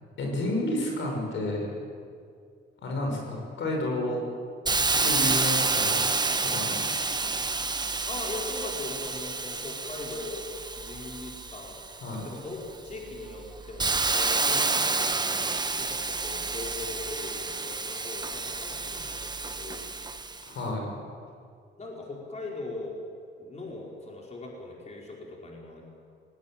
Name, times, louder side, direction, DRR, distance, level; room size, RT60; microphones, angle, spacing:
voice 1, 0.2-1.7 2.8-4.2 5.0-6.0 6.4-6.9 12.0-12.3 20.4-20.9, left 1 dB, 70° left, 0 dB, 6.0 m, -30 dB
Hiss, 4.7-12.2 12.7-20.5, right 3 dB, 20° right, 1.3 m, -29 dB
voice 2, 8.1-10.5 10.7-12.6 12.8-19.9 21.8-23.0 23.4-25.8, left 2 dB, 35° left, -2 dB, 5.0 m, -40 dB
19.5 x 18.5 x 9.0 m, 2.3 s
cardioid pair, 90°, 20 cm